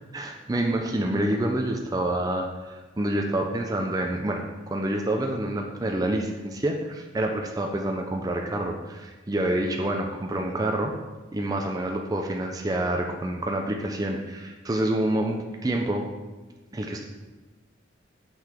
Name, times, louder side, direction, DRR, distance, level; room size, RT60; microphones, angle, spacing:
voice 1, 0.1-10.9 11.3-16.1 16.7-17.0, right 1 dB, 20° right, 2 dB, 0.4 m, -27 dB
5.8 x 5.7 x 3.5 m, 1.2 s
head